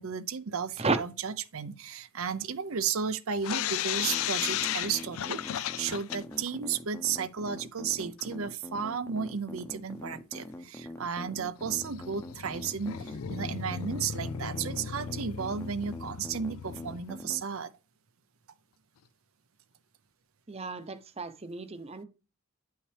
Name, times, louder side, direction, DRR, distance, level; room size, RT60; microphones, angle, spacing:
voice 1, 0.0-17.7, right 6 dB, 75° right, 0.6 m, -34 dB
sound 1, 3.4-6.5 6.8-6.9 7.2-7.3 8.2-8.3 9.3-9.4 9.9-10.0 10.4-10.5 11.6-17.2, left 10 dB, 80° left, 0.4 m, -35 dB
sound 2, 4.0-17.4, left 1 dB, 15° left, 0.8 m, -43 dB
voice 2, 20.5-22.0, right 3 dB, 30° right, 0.7 m, -32 dB
9.7 x 5.6 x 3.3 m
head